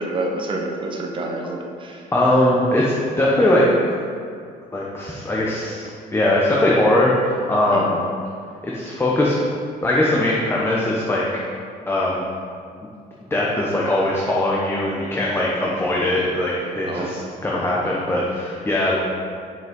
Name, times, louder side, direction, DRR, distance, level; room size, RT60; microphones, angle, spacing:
voice 1, 0.0-2.0 7.6-7.9 16.9-17.2, right 2 dB, 30° right, 1 dB, 1.0 m, -28 dB
voice 2, 2.1-3.7 4.7-8.0 8.6-9.3 9.8-11.2 11.9-12.2 13.3-19.0, left 1 dB, 15° left, -5 dB, 1.0 m, -20 dB
5.9 x 5.4 x 5.3 m, 2.3 s
cardioid pair, 110°, 17 cm